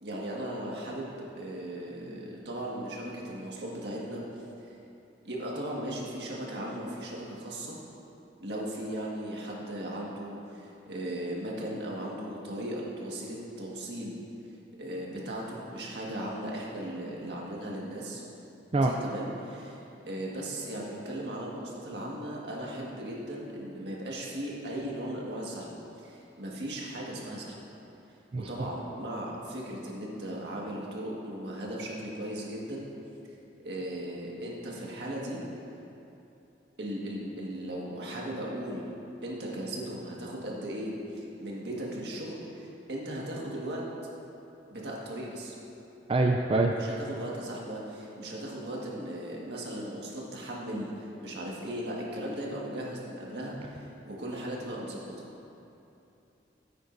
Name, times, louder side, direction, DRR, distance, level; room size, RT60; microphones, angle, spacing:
voice 1, 0.0-4.2 5.2-7.8 8.4-14.2 14.8-18.2 18.7-27.6 28.3-32.9 33.6-35.4 36.8-38.9 39.2-43.8 44.7-45.5 46.7-55.1, right 1 dB, 65° right, -3 dB, 1.7 m, -37 dB
voice 2, 46.1-46.9, right 2 dB, 30° right, 2 dB, 0.4 m, -25 dB
14.0 x 8.9 x 2.6 m, 2.9 s
head